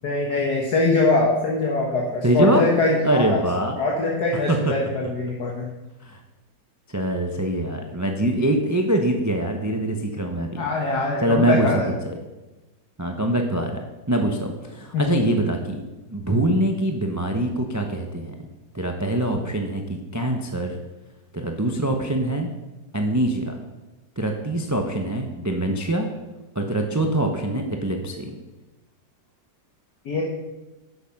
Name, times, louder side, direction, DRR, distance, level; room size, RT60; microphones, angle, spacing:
voice 1, 0.0-3.4 3.8-5.7 10.6-11.9 14.9-15.1 30.1-30.2, left 2 dB, 60° left, -1 dB, 1.9 m, -22 dB
voice 2, 2.2-2.6 3.0-3.8 4.3-4.7 6.0-6.2 6.9-10.6 11.2-12.2 13.0-15.8 16.1-18.4 18.7-20.8 21.3-22.5 22.9-23.5 24.2-26.1 26.5-28.3, right 1 dB, 15° right, 3 dB, 0.5 m, -24 dB
10.5 x 8.1 x 5.9 m, 1.1 s
omnidirectional pair, 2.0 m